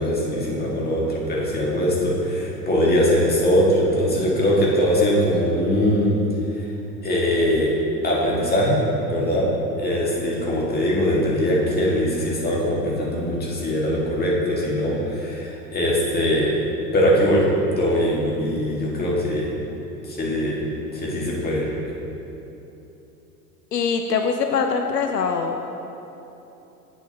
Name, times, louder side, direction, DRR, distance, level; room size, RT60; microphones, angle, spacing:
voice 1, 0.0-6.1 7.0-7.7 8.0-8.8 9.1-9.5 9.8-16.5 16.9-17.4 17.8-19.5 20.0-20.6 20.9-21.7, equal, 20° left, -4 dB, 2.0 m, -21 dB
voice 2, 23.7-25.6, left 5 dB, 80° left, 5 dB, 0.6 m, -23 dB
11.0 x 8.1 x 2.9 m, 3.0 s
figure-of-eight pair, 80°, 47 cm